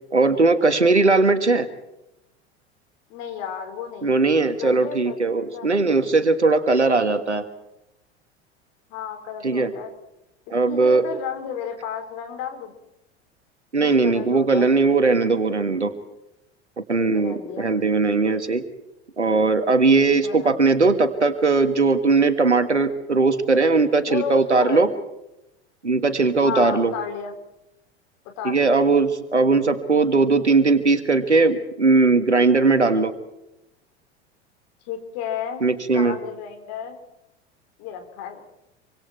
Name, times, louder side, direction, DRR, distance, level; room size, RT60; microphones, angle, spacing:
voice 1, 0.1-1.7 4.0-7.4 9.4-9.7 10.5-11.0 13.7-15.9 16.9-18.6 19.2-24.9 25.8-26.9 28.4-33.1 35.6-36.2, right 3 dB, 85° right, 10 dB, 1.6 m, -19 dB
voice 2, 3.1-4.3 4.6-5.2 5.5-5.7 8.9-9.9 10.7-12.7 13.8-14.7 17.0-17.6 20.2-20.6 24.1-24.9 26.4-27.3 28.4-28.8 34.8-37.0 37.8-38.5, left 8 dB, 50° left, 5 dB, 4.8 m, -32 dB
26.0 x 25.5 x 4.6 m, 0.86 s
figure-of-eight pair, 75°, 34 cm